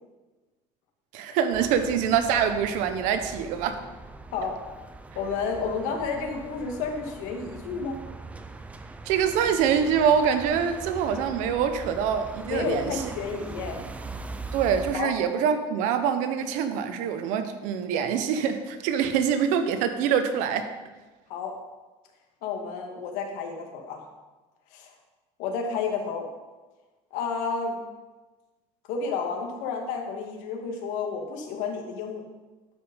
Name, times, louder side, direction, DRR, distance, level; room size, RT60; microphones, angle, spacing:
voice 1, 1.1-3.8 9.0-13.0 14.5-20.7, right 7 dB, 75° right, 8 dB, 1.1 m, -25 dB
sound 1, 1.5-15.0, right 3 dB, 10° right, 0.5 m, -41 dB
voice 2, 5.2-8.0 12.5-13.9 14.9-15.1 21.3-21.5 22.4-24.0 24.7-24.9 25.4-26.3 27.1-27.8 28.9-32.2, left 5 dB, 75° left, 3 dB, 1.9 m, -31 dB
12.0 x 5.5 x 5.3 m, 1.2 s
cardioid pair, 145°, 13 cm